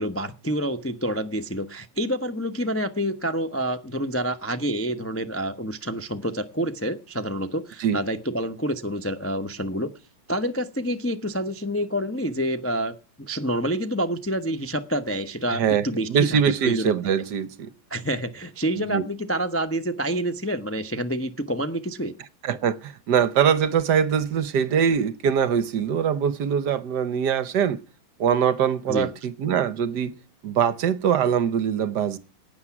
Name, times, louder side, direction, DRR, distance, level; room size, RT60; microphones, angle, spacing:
voice 1, 0.0-9.9 10.3-16.9 17.9-22.1 28.9-29.1, equal, 15° left, 0.4 m, -28 dB
voice 2, 15.5-17.7 18.8-19.0 22.4-27.8 28.2-30.2 30.4-32.2, right 8 dB, 65° right, 1.3 m, -23 dB
16.0 x 9.6 x 5.9 m
omnidirectional pair, 2.2 m